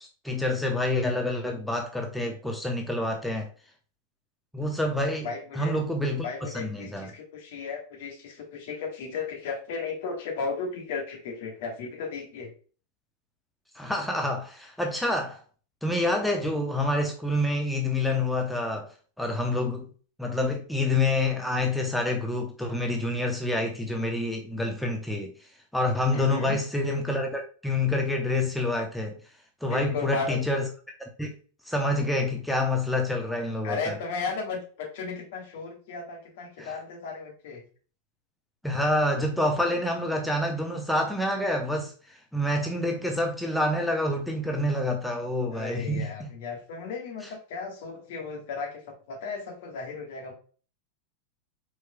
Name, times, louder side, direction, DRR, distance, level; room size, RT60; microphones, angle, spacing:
voice 1, 0.2-3.5 4.5-5.3 5.6-6.2 6.5-7.1 13.7-15.4 15.8-18.9 19.2-19.9 20.2-25.3 25.7-29.2 29.6-30.7 31.2-31.3 31.7-33.9 36.6-36.7 38.6-46.3, left 1 dB, ahead, 0.7 m, -27 dB
voice 2, 5.2-5.8 6.2-12.5 26.1-26.6 29.6-30.4 33.6-37.6 45.5-50.3, left 5 dB, 50° left, 1.4 m, -35 dB
4.6 x 4.4 x 2.3 m
figure-of-eight pair, 90°, 0 cm